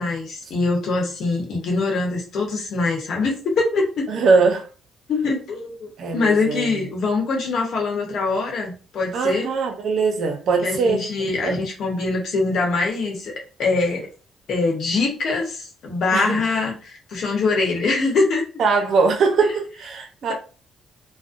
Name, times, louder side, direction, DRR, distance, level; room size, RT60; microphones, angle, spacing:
voice 1, 0.0-4.1 5.1-9.5 10.6-13.3 13.6-14.1 14.5-18.4, left 3 dB, 70° left, 1.0 m, -23 dB
voice 2, 4.1-4.7 6.0-6.8 9.1-11.1 11.4-11.6 16.1-16.4 18.6-20.3, right 4 dB, 65° right, 0.7 m, -21 dB
2.5 x 2.1 x 2.5 m
cardioid pair, 90°, 0 cm